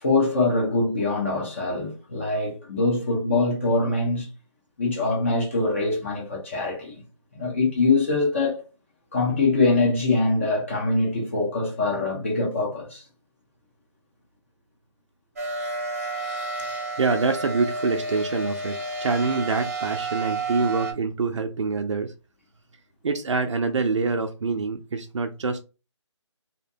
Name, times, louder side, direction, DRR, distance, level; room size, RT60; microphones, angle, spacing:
voice 1, 0.0-4.3 4.8-7.0 7.3-8.6 9.1-13.0, left 3 dB, 25° left, 0.5 m, -23 dB
sound 1, 15.4-20.9, right 2 dB, 30° right, 0.6 m, -31 dB
voice 2, 16.7-22.1 23.0-25.6, right 4 dB, 75° right, 0.4 m, -26 dB
2.6 x 2.1 x 2.6 m
figure-of-eight pair, 160°, 16 cm